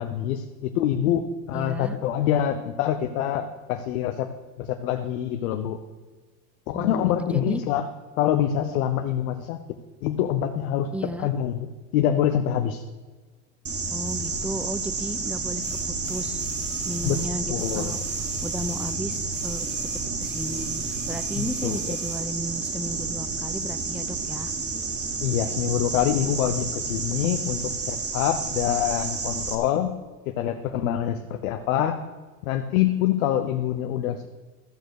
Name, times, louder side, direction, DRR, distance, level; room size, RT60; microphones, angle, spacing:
voice 1, 0.0-4.3 4.6-5.8 6.7-7.9 8.2-9.6 10.0-10.9 11.2-11.7 11.9-12.8 17.0-17.2 17.5-17.9 21.4-22.0 25.2-30.0 30.3-32.0 32.4-34.3, left 10 dB, 75° left, 6 dB, 0.9 m, -25 dB
voice 2, 1.5-2.0 6.7-7.6 10.9-11.3 13.9-15.6 16.1-16.5 16.8-18.0 18.4-19.7 20.2-24.5, right 1 dB, 5° right, 11 dB, 0.7 m, -34 dB
sound 1, 13.7-29.6, right 4 dB, 35° right, 2.1 m, -30 dB
sound 2, 14.0-14.2 15.6-19.0 19.3-22.3 23.2-23.3, right 4 dB, 75° right, 3.7 m, -48 dB
13.0 x 6.7 x 6.5 m, 1.3 s
hypercardioid pair, 95°, 42 cm